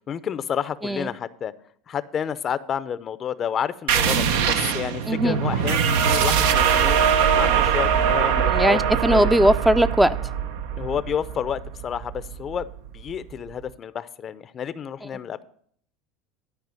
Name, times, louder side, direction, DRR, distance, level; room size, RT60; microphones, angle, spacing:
voice 1, 0.0-1.5 1.9-7.0 7.4-8.8 9.1-9.3 10.8-12.7 12.9-15.4, left 8 dB, 40° left, 15 dB, 0.6 m, -30 dB
sound 1, 3.9-13.1, right 7 dB, 80° right, 0.8 m, -22 dB
voice 2, 8.5-10.2, right 1 dB, 5° right, 10 dB, 0.5 m, -19 dB
12.0 x 4.9 x 7.7 m, 0.62 s
supercardioid pair, 100°, 0 cm